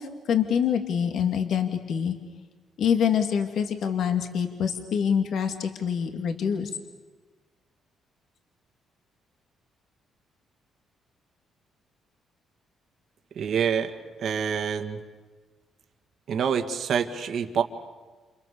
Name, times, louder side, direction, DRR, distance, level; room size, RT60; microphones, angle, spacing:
voice 1, 0.0-2.2 2.8-6.7, left 8 dB, 70° left, 5 dB, 2.3 m, -25 dB
voice 2, 13.4-13.9 14.2-15.0 16.3-17.6, right 7 dB, 65° right, 6 dB, 2.0 m, -26 dB
29.0 x 28.5 x 7.1 m, 1.3 s
cardioid pair, 90°, 0 cm